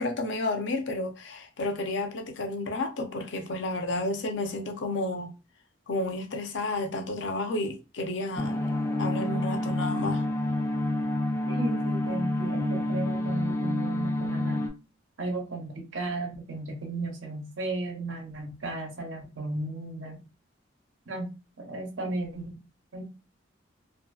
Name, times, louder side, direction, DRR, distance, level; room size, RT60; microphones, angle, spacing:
voice 1, 0.0-5.3 5.9-10.3, left 2 dB, 70° left, 0.6 m, -31 dB
sound 1, 8.4-14.7, left 1 dB, 15° left, 0.4 m, -28 dB
voice 2, 11.5-14.7 15.2-20.2 21.1-21.3 21.6-22.6 22.9-23.0, right 2 dB, 85° right, 0.9 m, -34 dB
2.6 x 2.5 x 2.3 m
head